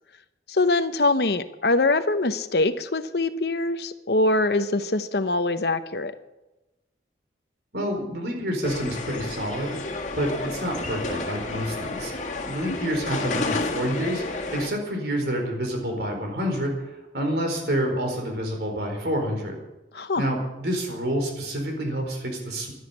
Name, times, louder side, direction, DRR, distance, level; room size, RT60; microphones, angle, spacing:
voice 1, 0.5-6.1 12.7-12.9 19.9-20.2, left 2 dB, 65° left, 11 dB, 0.9 m, -23 dB
voice 2, 7.7-9.8 10.1-12.1 12.5-16.7 17.1-19.6 20.2-22.7, equal, 65° right, 2 dB, 4.4 m, -28 dB
sound 1, 8.6-14.7, left 3 dB, 40° left, 1.9 m, -31 dB
12.0 x 10.5 x 9.9 m, 1.0 s
head